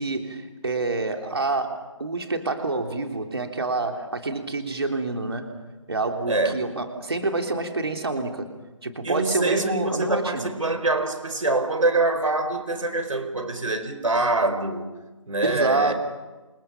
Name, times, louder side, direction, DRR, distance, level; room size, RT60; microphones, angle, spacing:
voice 1, 0.0-5.5 5.9-8.5 8.8-10.5 15.4-15.9, right 3 dB, 50° right, 3.3 m, -27 dB
voice 2, 6.3-6.6 9.0-14.9 15.3-15.9, right 2 dB, 75° right, 4.6 m, -25 dB
28.5 x 28.0 x 5.9 m
figure-of-eight pair, 180°, 17 cm